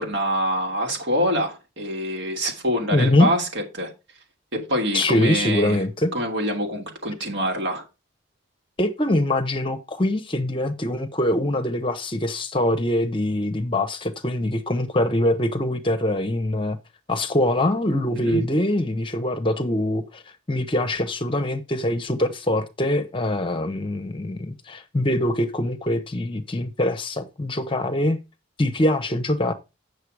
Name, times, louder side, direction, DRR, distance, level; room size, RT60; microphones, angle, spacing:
voice 1, 0.0-3.9 4.5-5.8 6.1-7.8 18.1-18.4, equal, 65° right, 2.9 m, -25 dB
voice 2, 2.9-3.3 4.9-6.1 8.8-16.8 17.1-20.2 20.5-28.2 28.6-29.5, left 1 dB, 25° left, 0.8 m, -23 dB
8.3 x 6.7 x 4.8 m
head